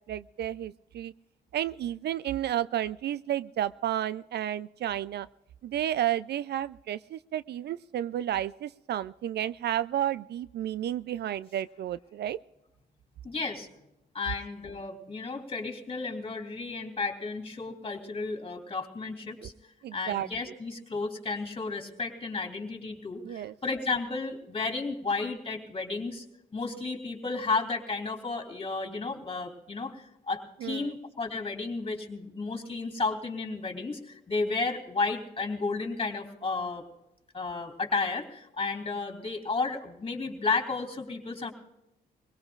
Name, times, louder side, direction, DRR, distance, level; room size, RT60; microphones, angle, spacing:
voice 1, 0.1-1.1 1.5-5.3 5.6-12.4 19.4-19.5 19.8-20.3 23.2-23.5 30.6-30.9, right 11 dB, 65° right, 17 dB, 0.4 m, -32 dB
voice 2, 13.2-13.7 14.1-19.5 19.9-26.2 26.5-36.8 37.3-41.5, left 3 dB, 30° left, 4 dB, 3.2 m, -33 dB
23.0 x 17.5 x 2.4 m, 0.88 s
cardioid pair, 70°, 19 cm